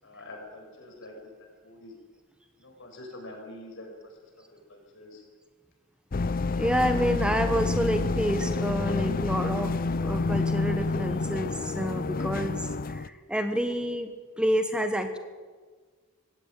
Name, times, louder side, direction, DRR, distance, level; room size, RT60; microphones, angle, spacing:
voice 1, 0.0-1.3 1.6-1.9 2.6-3.9 4.7-5.2, left 1 dB, 60° left, 1 dB, 7.0 m, -45 dB
sound 1, 6.1-13.1, left 3 dB, 45° left, 0.5 m, -28 dB
voice 2, 6.5-14.1 14.4-15.2, equal, 5° right, 7 dB, 1.2 m, -28 dB
20.0 x 17.0 x 9.0 m, 1.5 s
head